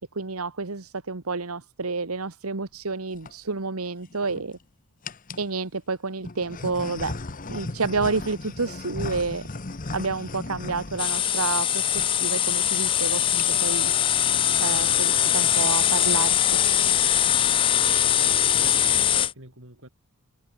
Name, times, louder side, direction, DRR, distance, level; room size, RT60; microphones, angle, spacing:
voice 1, 0.1-4.6 5.4-7.1 7.5-9.4 9.9-11.9 12.2-13.9 14.6-16.6, right 4 dB, 85° right, 1.4 m, -29 dB
sound 1, 2.9-3.3 4.0-4.6 5.0-5.5 6.2-11.7 11.9-12.1 12.4-12.5 12.7-13.0 13.3-13.8, left 3 dB, 40° left, 1.1 m, -36 dB
sound 2, 11.0-19.3, left 10 dB, 25° left, 0.3 m, -22 dB
voice 2, 18.2-19.9, right 1 dB, 60° right, 7.4 m, -43 dB
head